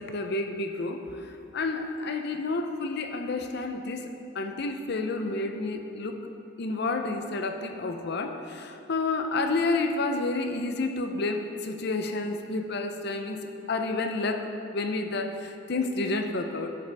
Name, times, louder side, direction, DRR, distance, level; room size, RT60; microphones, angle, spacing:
voice 1, 0.0-6.2 6.6-16.7, left 3 dB, 60° left, 5 dB, 0.6 m, -30 dB
12.5 x 5.5 x 3.5 m, 2.7 s
head